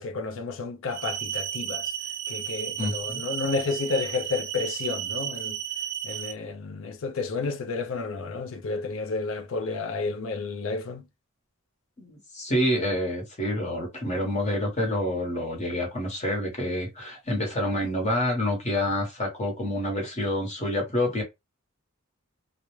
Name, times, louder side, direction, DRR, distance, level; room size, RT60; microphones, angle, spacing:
voice 1, 0.0-1.9 2.3-5.6 6.0-11.0, left 4 dB, 70° left, 0.5 m, -31 dB
sound 1, 0.9-6.3, right 10 dB, 50° right, 0.5 m, -33 dB
voice 2, 2.8-3.2 12.0-21.2, left 1 dB, 35° left, 1.0 m, -28 dB
2.4 x 2.0 x 3.0 m
head